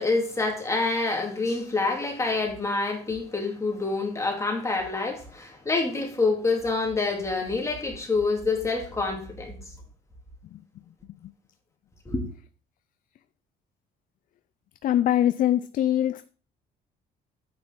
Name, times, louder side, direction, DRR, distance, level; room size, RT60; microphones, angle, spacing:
voice 1, 0.0-9.5 12.1-12.2, left 3 dB, 15° left, 2.7 m, -27 dB
voice 2, 14.8-16.3, left 11 dB, 55° left, 0.4 m, -23 dB
9.6 x 8.7 x 3.8 m
cardioid pair, 110°, 17 cm